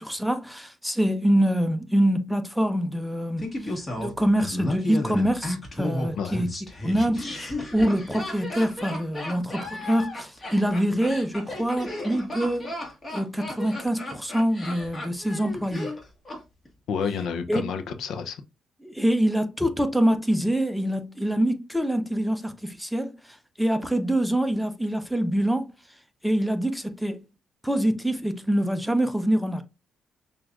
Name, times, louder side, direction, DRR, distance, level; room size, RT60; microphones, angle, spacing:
voice 1, 0.0-6.5 6.8-12.7 13.1-15.9 17.5-17.6 18.8-25.7 26.2-27.2 27.6-29.6, equal, ahead, 0.6 m, -25 dB
Laughter, 3.4-16.4 16.7-16.8, left 1 dB, 25° left, 1.4 m, -34 dB
voice 2, 16.9-18.4, left 6 dB, 75° left, 0.5 m, -29 dB
5.9 x 2.4 x 2.4 m
cardioid pair, 90°, 0 cm